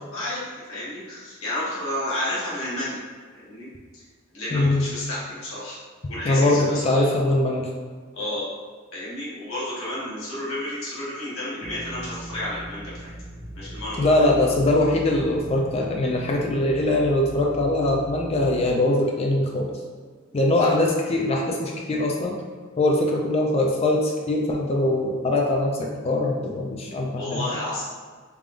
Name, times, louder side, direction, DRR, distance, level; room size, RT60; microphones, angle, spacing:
voice 1, 0.1-3.0 3.4-3.7 3.9-4.0 4.3-5.8 6.1-7.1 8.1-8.5 8.9-13.1 13.5-14.3 20.6-20.8 27.2-27.8, left 1 dB, 85° left, -8 dB, 1.4 m, -31 dB
voice 2, 4.5-4.8 6.2-7.7 14.0-19.7 20.3-22.3 22.8-27.6, left 1 dB, 30° left, 0 dB, 0.4 m, -22 dB
sound 1, 11.6-18.7, right 1 dB, 25° right, 0.5 m, -39 dB
3.4 x 3.4 x 2.5 m, 1.5 s
head